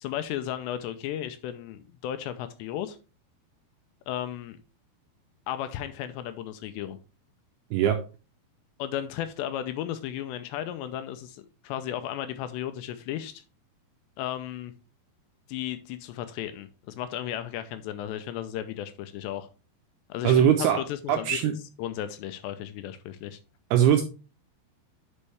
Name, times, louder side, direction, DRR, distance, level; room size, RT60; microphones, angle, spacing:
voice 1, 0.0-3.0 4.1-4.6 5.5-7.0 8.8-13.4 14.2-14.7 15.5-19.5 20.1-20.5 20.8-23.4, left 11 dB, 85° left, 10 dB, 2.6 m, -34 dB
voice 2, 20.2-20.8 21.1-21.5 23.7-24.0, right 9 dB, 85° right, 5 dB, 2.3 m, -20 dB
10.0 x 5.4 x 3.4 m, 0.33 s
omnidirectional pair, 5.3 m